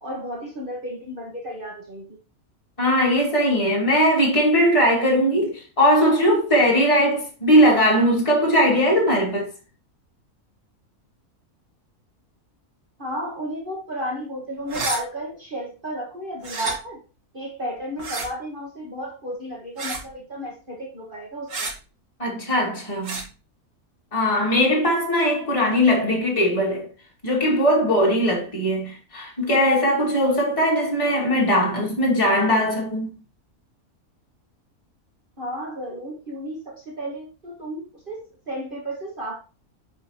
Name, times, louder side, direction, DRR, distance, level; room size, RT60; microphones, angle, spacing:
voice 1, 0.0-2.1 13.0-17.0 17.3-21.7 35.4-39.4, equal, 35° right, 1.6 m, -33 dB
voice 2, 2.8-9.5 22.2-23.2 24.1-26.9 27.2-33.2, equal, 20° left, 2.5 m, -20 dB
sound 1, 14.7-15.0 16.4-16.7 18.0-18.3 19.8-20.1 21.5-21.7 23.0-23.2, right 3 dB, 55° right, 1.9 m, -29 dB
10.5 x 4.4 x 2.9 m
omnidirectional pair, 1.6 m